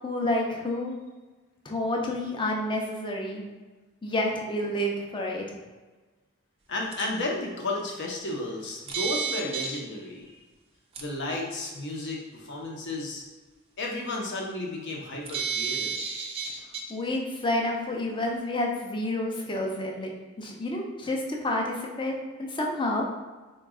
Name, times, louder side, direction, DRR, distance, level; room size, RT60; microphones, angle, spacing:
voice 1, 0.0-0.9 1.6-3.4 4.0-5.6 16.9-20.1 20.4-23.1, left 1 dB, 25° left, 0 dB, 0.5 m, -29 dB
voice 2, 6.7-10.3 11.0-13.2 13.8-16.0, left 2 dB, 60° left, -1 dB, 0.7 m, -33 dB
sound 1, 6.9-7.0 8.9-9.8 11.0-11.1 15.3-16.9, right 6 dB, 30° right, 0.5 m, -31 dB
3.9 x 2.3 x 3.6 m, 1.3 s
head